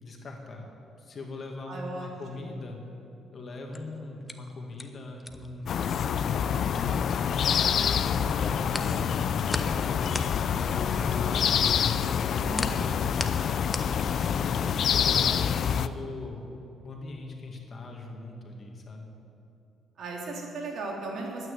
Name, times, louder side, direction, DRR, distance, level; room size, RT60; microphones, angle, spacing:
voice 1, 0.0-2.8 3.3-10.0 10.5-13.2 13.8-16.4 16.8-19.1, left 2 dB, 45° left, 1 dB, 2.2 m, -40 dB
voice 2, 1.7-2.1 8.0-8.2 12.4-13.0 14.4-14.8 20.0-21.5, right 2 dB, 65° right, -2 dB, 3.0 m, -37 dB
sound 1, 3.5-7.7 8.0-14.6, left 2 dB, 15° left, 0.9 m, -38 dB
sound 2, 5.7-15.9, left 8 dB, 60° left, 0.4 m, -26 dB
12.0 x 9.3 x 8.2 m, 2.7 s
cardioid pair, 90°, 0 cm